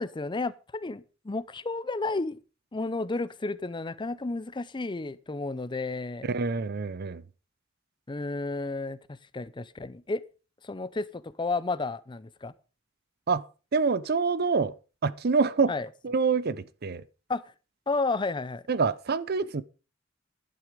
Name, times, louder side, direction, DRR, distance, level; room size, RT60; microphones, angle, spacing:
voice 1, 0.0-2.4 2.7-6.3 8.1-10.2 10.6-12.5 15.7-15.9 17.3-17.4 17.9-18.6, left 3 dB, 25° left, 0.5 m, -32 dB
voice 2, 6.3-7.2 13.3-13.4 13.7-14.7 15.0-15.7 16.0-17.0 18.7-19.6, right 4 dB, 50° right, 0.6 m, -26 dB
11.5 x 9.3 x 5.0 m
head